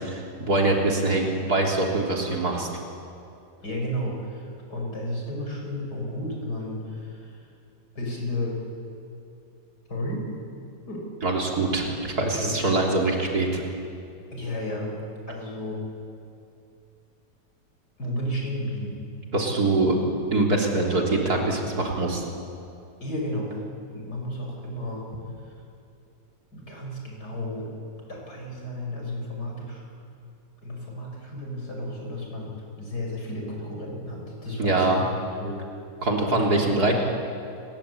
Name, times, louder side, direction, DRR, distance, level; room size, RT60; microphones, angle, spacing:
voice 1, 0.0-2.7 11.2-13.6 19.3-20.0 20.3-22.2 34.6-35.0 36.0-36.9, right 2 dB, 60° right, 0 dB, 4.0 m, -23 dB
voice 2, 3.6-7.5 8.0-8.6 9.9-10.2 10.9-11.1 12.4-12.6 14.3-15.0 15.3-15.8 18.0-19.0 23.0-23.6 23.9-25.0 25.4-25.5 26.5-27.7 28.1-29.9 30.6-35.0 35.4-35.6 36.2-36.8, left 1 dB, 65° left, 0 dB, 7.0 m, -33 dB
29.5 x 22.0 x 8.6 m, 2.6 s
omnidirectional pair, 1.9 m